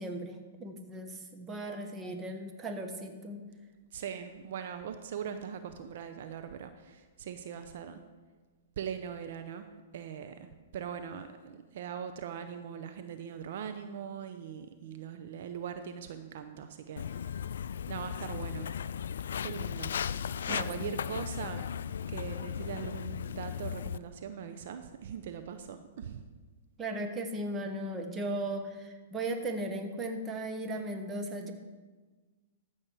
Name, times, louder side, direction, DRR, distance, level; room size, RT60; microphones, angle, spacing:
voice 1, 0.0-3.4 20.5-21.0 26.8-31.5, right 1 dB, 20° right, 5 dB, 1.5 m, -37 dB
voice 2, 3.9-8.0 8.8-17.3 17.9-18.7 19.4-21.6 22.1-26.2, right 8 dB, 65° right, 8 dB, 0.8 m, -41 dB
Walk footsteps, 17.0-24.0, left 8 dB, 75° left, 0.3 m, -36 dB
14.0 x 7.3 x 4.8 m, 1.3 s
hypercardioid pair, 125°, 0 cm